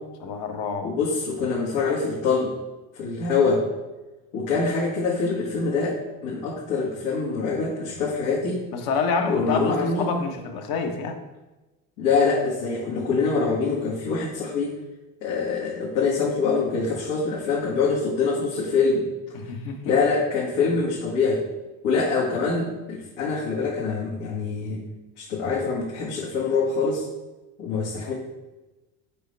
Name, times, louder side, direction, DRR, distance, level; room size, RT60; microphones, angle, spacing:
voice 1, 0.2-0.9 8.7-11.2 19.3-19.8 20.7-20.8 28.0-28.1, left 5 dB, 60° left, 4 dB, 1.1 m, -27 dB
voice 2, 0.8-2.5 2.9-3.7 4.3-8.6 9.2-10.1 12.0-14.7 15.2-19.1 19.8-21.4 21.8-24.8 25.2-27.0 27.6-28.1, left 4 dB, 85° left, -7 dB, 1.8 m, -24 dB
6.6 x 5.2 x 3.3 m, 1.1 s
supercardioid pair, 110°, 40 cm